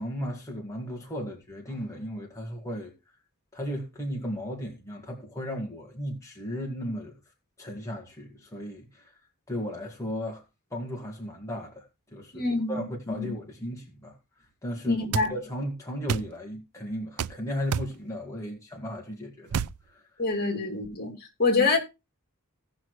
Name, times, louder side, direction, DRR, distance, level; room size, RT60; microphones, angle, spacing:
voice 1, 0.0-2.9 3.5-7.2 7.6-9.1 9.5-10.4 10.7-11.8 12.1-14.2 14.6-15.0 15.3-20.0, equal, 15° left, 1.9 m, -35 dB
voice 2, 12.3-13.3 14.9-15.3 20.2-21.1 21.4-21.8, left 3 dB, 45° left, 2.6 m, -26 dB
sound 1, 15.1-15.3 16.1-16.3 17.2-17.4 17.7-17.9 19.5-19.8, right 6 dB, 85° right, 0.4 m, -28 dB
17.5 x 6.1 x 3.1 m
head